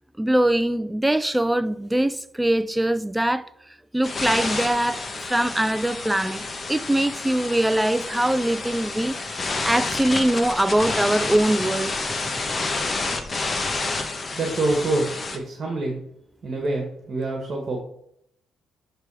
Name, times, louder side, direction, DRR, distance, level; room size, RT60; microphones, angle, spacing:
voice 1, 0.2-3.5 3.9-9.2 9.6-12.0, right 1 dB, 5° right, 0.4 m, -22 dB
sound 1, 4.0-15.4, left 3 dB, 35° left, 1.1 m, -29 dB
voice 2, 14.4-16.0 16.4-17.8, right 2 dB, 45° right, 1.7 m, -26 dB
10.5 x 3.6 x 4.9 m
cardioid pair, 90°, 0 cm